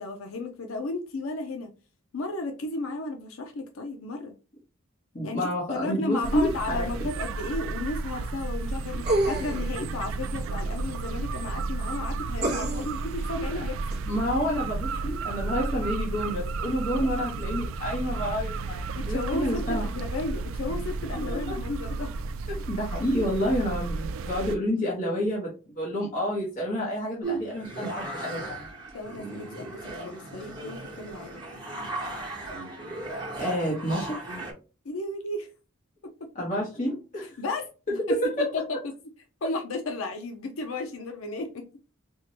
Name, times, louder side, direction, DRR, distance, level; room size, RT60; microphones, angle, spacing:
voice 1, 0.0-1.7 2.1-4.3 5.2-13.8 17.2-17.3 18.9-22.1 28.9-31.4 34.8-35.5 36.0-36.3 37.2-37.7 38.1-38.2 38.5-38.6 39.4-41.6, left 2 dB, 80° left, 0.6 m, -34 dB
voice 2, 5.1-6.9 8.9-9.1 14.1-19.9 21.3-21.5 22.5-28.7 33.4-34.2 36.3-37.4 37.9-38.5, equal, 35° left, 0.9 m, -29 dB
sound 1, 6.2-24.6, right 3 dB, 75° right, 0.3 m, -32 dB
sound 2, 9.0-9.7 12.4-13.0 13.9-14.0, right 1 dB, 50° right, 0.8 m, -27 dB
sound 3, 27.2-34.5, right 2 dB, 20° right, 0.9 m, -36 dB
4.5 x 2.2 x 2.7 m
head